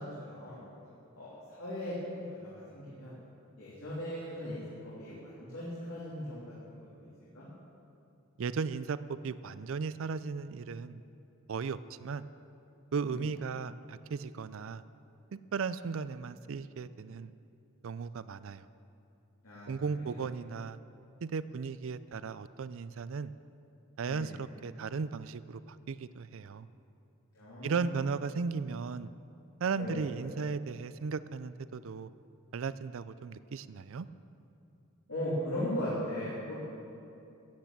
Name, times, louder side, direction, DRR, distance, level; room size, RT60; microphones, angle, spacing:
voice 1, 0.3-0.6 1.1-3.1 3.6-6.8 7.3-7.5 13.0-13.2 19.4-19.7 20.0-20.2 24.1-24.3 27.3-27.8 29.8-30.0 35.1-36.6, left 1 dB, 70° left, -8 dB, 3.2 m, -38 dB
voice 2, 8.4-11.0 11.5-12.3 12.9-14.8 15.3-17.3 17.8-18.7 19.7-20.8 21.2-23.3 24.0-26.7 27.6-29.1 29.6-32.1 32.5-34.1, right 5 dB, 65° right, 15 dB, 0.4 m, -36 dB
15.0 x 9.5 x 7.4 m, 2.7 s
head